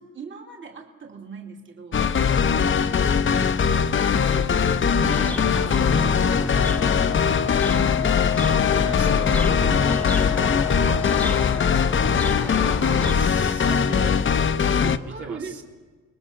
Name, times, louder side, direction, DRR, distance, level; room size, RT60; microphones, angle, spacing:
voice 1, 0.0-2.1 3.9-6.3 6.9-8.0 10.3-10.5 10.9-11.0 12.4-12.6 13.6-14.3 14.5-15.6, right 5 dB, 40° right, 2 dB, 2.7 m, -39 dB
sound 1, 1.9-15.0, left 6 dB, 40° left, 1.0 m, -21 dB
sound 2, 5.1-13.1, left 1 dB, 5° left, 0.6 m, -32 dB
Wind instrument woodwind instrument, 6.5-11.8, left 14 dB, 90° left, 1.2 m, -30 dB
voice 2, 8.7-9.8 12.8-13.9 15.1-15.6, right 4 dB, 70° right, 0 dB, 3.0 m, -38 dB
29.5 x 20.5 x 6.6 m, 1.4 s
cardioid pair, 90°, 30 cm